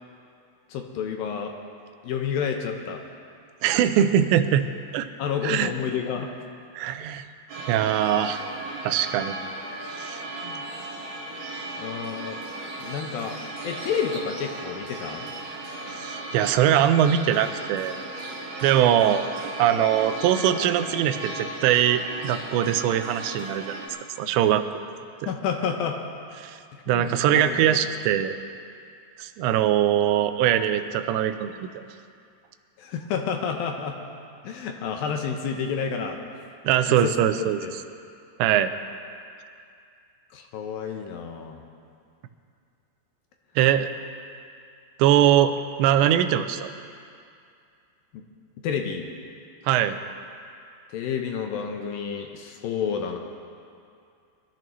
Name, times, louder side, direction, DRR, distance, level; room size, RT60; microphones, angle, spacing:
voice 1, 0.7-1.5 2.0-3.0 5.2-6.3 10.4-10.6 11.8-12.4 12.8-13.4 13.6-15.3 25.3-26.0 26.7-27.8 32.8-34.0 34.4-36.2 36.9-37.7 40.3-41.6 48.1-48.2 48.6-49.1 50.9-53.2, left 7 dB, 75° left, 3 dB, 2.2 m, -30 dB
voice 2, 3.6-4.7 4.9-5.1 5.4-5.7 6.8-7.3 7.7-8.4 8.8-9.3 10.0-10.2 15.9-18.0 18.6-19.2 19.6-23.8 24.2-24.6 26.4-26.6 26.9-28.3 29.2-31.7 36.6-37.6 38.4-38.7 43.6-43.9 45.0-45.5 45.8-46.7 49.7-50.0, right 10 dB, 90° right, 10 dB, 2.9 m, -22 dB
sound 1, 7.5-23.9, right 2 dB, 50° right, 2.5 m, -36 dB
22.0 x 13.5 x 3.1 m, 2.4 s
omnidirectional pair, 4.9 m